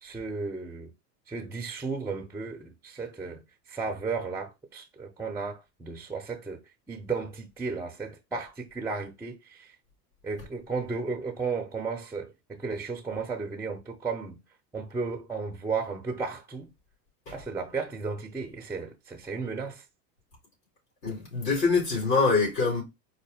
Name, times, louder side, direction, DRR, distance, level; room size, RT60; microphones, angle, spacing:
voice 1, 0.0-0.9 1.3-3.4 3.7-6.6 6.9-9.7 10.2-14.4 14.7-16.7 17.3-19.8, right 4 dB, 5° right, 0.3 m, -34 dB
voice 2, 21.0-22.8, left 4 dB, 85° left, 2.7 m, -24 dB
4.5 x 2.2 x 3.3 m
hypercardioid pair, 90°, 48 cm